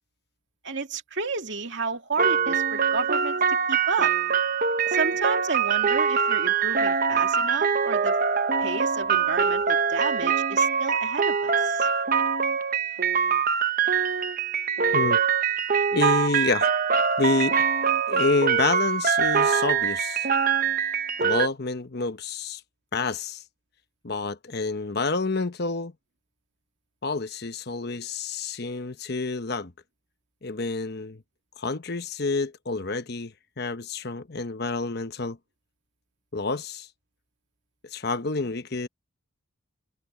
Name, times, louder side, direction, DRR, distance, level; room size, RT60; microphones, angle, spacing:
voice 1, 0.6-3.4 3.7-4.1 4.9-8.2 8.6-11.9, right 4 dB, 60° right, 2.6 m, -31 dB
sound 1, 2.2-21.5, right 6 dB, 45° right, 1.0 m, -23 dB
voice 2, 15.9-16.7 17.2-17.6 18.1-20.3 21.2-22.6 22.9-23.4 24.0-25.9 27.0-29.7 30.4-31.2 31.6-35.4 36.3-36.9 37.9-38.9, left 3 dB, 50° left, 1.0 m, -28 dB
head